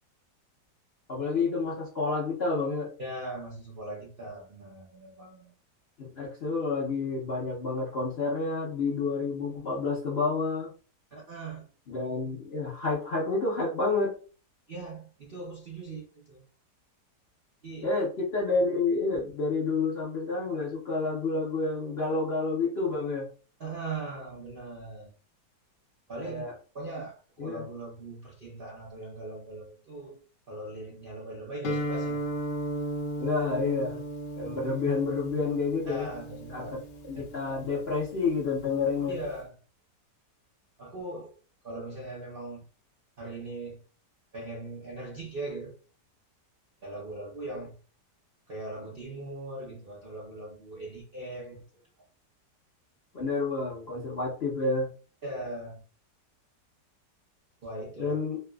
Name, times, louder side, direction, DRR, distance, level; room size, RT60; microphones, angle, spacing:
voice 1, 1.1-2.9 6.0-10.7 11.9-14.2 17.8-23.3 26.2-26.5 27.4-27.6 33.2-34.1 34.3-36.1 36.5-39.2 53.1-54.9 58.0-58.4, left 3 dB, 50° left, 0.7 m, -29 dB
voice 2, 3.0-5.6 11.1-11.7 14.7-16.4 17.6-17.9 23.6-25.1 26.1-26.4 26.7-32.2 34.4-34.6 35.9-36.8 39.1-39.5 40.8-41.4 41.6-42.6 43.2-43.8 44.3-45.7 46.8-47.8 48.5-51.8 55.2-55.8 57.6-58.2, right 2 dB, 55° right, 0.6 m, -40 dB
Guitar, 31.6-39.4, right 1 dB, 85° left, 0.5 m, -36 dB
3.3 x 2.8 x 2.3 m
omnidirectional pair, 1.8 m